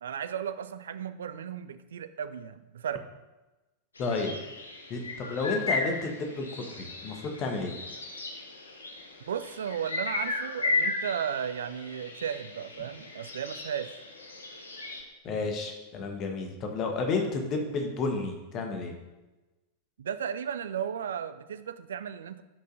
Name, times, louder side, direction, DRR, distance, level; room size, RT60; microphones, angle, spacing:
voice 1, 0.0-3.0 9.3-14.0 20.0-22.4, right 8 dB, 65° right, 13 dB, 0.3 m, -35 dB
sound 1, 4.0-15.0, left 3 dB, 75° left, 0.8 m, -35 dB
voice 2, 4.0-4.3 4.9-7.7 15.2-18.9, left 3 dB, 35° left, 3 dB, 1.1 m, -31 dB
9.9 x 5.3 x 2.6 m, 1.1 s
figure-of-eight pair, 90°, 0 cm